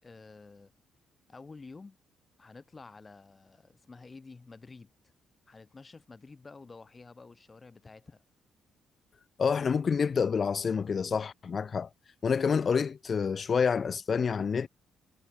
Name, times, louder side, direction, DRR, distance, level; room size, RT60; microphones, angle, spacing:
voice 1, 0.0-0.7 1.3-2.0 2.4-4.9 5.5-8.2, left 4 dB, 25° left, 5.9 m, -50 dB
voice 2, 9.4-11.9 12.2-14.7, left 6 dB, 45° left, 0.7 m, -28 dB
cardioid pair, 90°, 0 cm